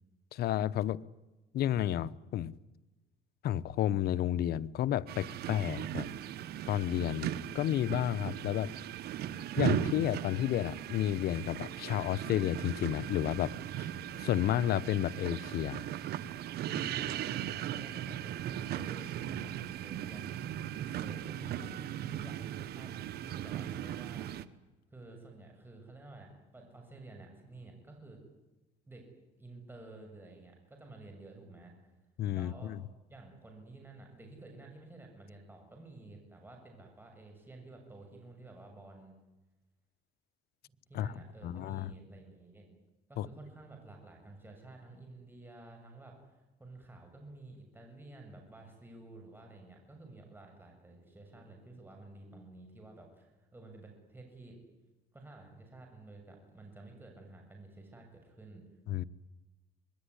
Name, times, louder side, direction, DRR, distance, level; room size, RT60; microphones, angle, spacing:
voice 1, 0.3-1.0 1.5-2.6 3.4-6.1 6.7-8.7 9.6-13.5 13.8-13.9 14.2-15.9 32.2-32.8 40.9-41.1 41.4-41.9 43.2-43.3 58.9-59.0, left 12 dB, 70° left, 0.9 m, -31 dB
sound 1, 5.1-24.5, right 11 dB, 70° right, 1.3 m, -38 dB
voice 2, 16.7-20.4 21.0-24.3 24.9-28.2 28.9-29.0 29.4-31.7 32.3-32.7 33.1-39.2 40.9-42.6 43.1-46.3 46.6-54.6 55.1-58.6, right 2 dB, 10° right, 7.3 m, -51 dB
25.0 x 21.0 x 9.9 m
cardioid pair, 110°, 17 cm